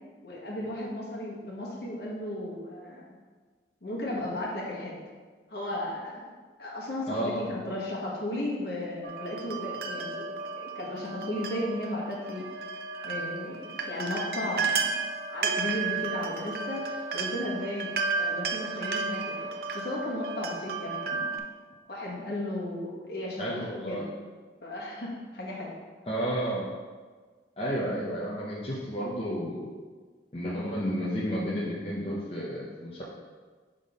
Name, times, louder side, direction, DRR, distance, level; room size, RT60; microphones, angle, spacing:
voice 1, 0.2-3.0 3.8-4.9 5.5-6.3 6.6-12.4 13.0-14.9 15.3-19.5 19.7-21.4 21.9-23.6 23.9-24.1 24.6-25.7, left 1 dB, 60° left, -4 dB, 1.4 m, -35 dB
voice 2, 7.1-7.5 23.4-24.0 26.1-26.7 27.6-29.7 30.3-33.0, equal, 30° left, -7 dB, 0.8 m, -31 dB
sound 1, 9.0-21.4, right 4 dB, 55° right, 0.5 m, -33 dB
5.9 x 3.7 x 5.0 m, 1.5 s
head